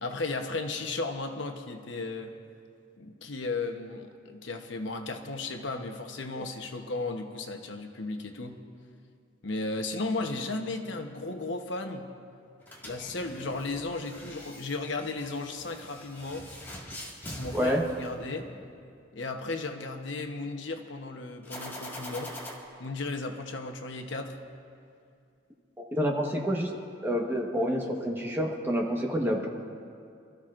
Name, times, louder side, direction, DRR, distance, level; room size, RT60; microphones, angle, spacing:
voice 1, 0.0-2.3 3.0-8.6 9.4-12.1 12.8-16.5 17.4-18.5 19.1-22.3 22.8-24.4, left 3 dB, 75° left, 5 dB, 1.0 m, -35 dB
sound 1, 12.6-18.8 21.4-22.5, left 1 dB, 10° left, 1.8 m, -43 dB
voice 2, 17.5-17.8 25.8-26.7 27.0-29.5, equal, 10° right, -1 dB, 1.2 m, -28 dB
26.5 x 13.5 x 2.5 m, 2.3 s
head